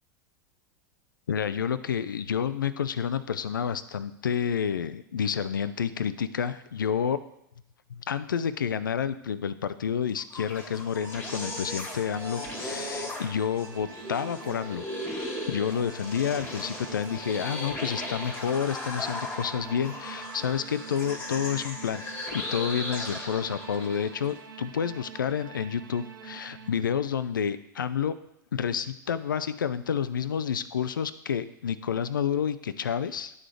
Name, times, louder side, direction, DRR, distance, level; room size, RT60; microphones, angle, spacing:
voice 1, 1.3-7.2 7.9-14.9 15.5-28.1 28.5-33.3, left 7 dB, 85° left, 14 dB, 0.4 m, -29 dB
sound 1, 10.2-24.3, left 1 dB, 20° left, 1.8 m, -37 dB
sound 2, 11.0-26.7, right 6 dB, 80° right, 0.7 m, -45 dB
10.5 x 4.0 x 3.2 m, 0.79 s
hypercardioid pair, 90°, 11 cm